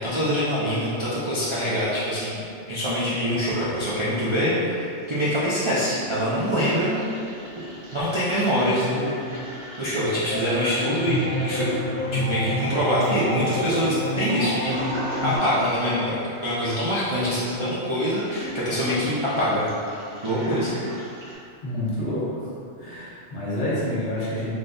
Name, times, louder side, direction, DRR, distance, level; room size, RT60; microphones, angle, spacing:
voice 1, 0.0-7.1 7.9-9.4 9.8-11.7 12.1-14.9 15.2-19.7 20.2-20.7, equal, 40° right, -11 dB, 0.4 m, -24 dB
Toilet flush, 4.9-21.3, equal, 80° right, 1.2 m, -40 dB
sound 1, 10.2-15.4, equal, 30° left, 0.5 m, -28 dB
voice 2, 21.6-22.4 22.8-24.5, left 1 dB, 65° left, -8 dB, 1.4 m, -28 dB
3.9 x 3.2 x 2.5 m, 2.5 s
omnidirectional pair, 1.3 m